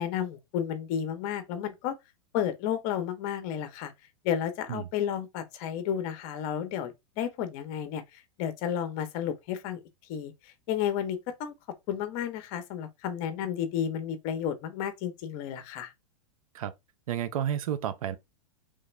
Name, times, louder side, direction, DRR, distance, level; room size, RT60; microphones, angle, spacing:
voice 1, 0.0-2.0 2.3-3.9 4.2-9.8 10.1-11.5 11.9-15.9, left 9 dB, 45° left, 0.7 m, -32 dB
voice 2, 17.1-18.2, right 10 dB, 75° right, 0.5 m, -31 dB
3.3 x 2.1 x 3.2 m
hypercardioid pair, 125°, 18 cm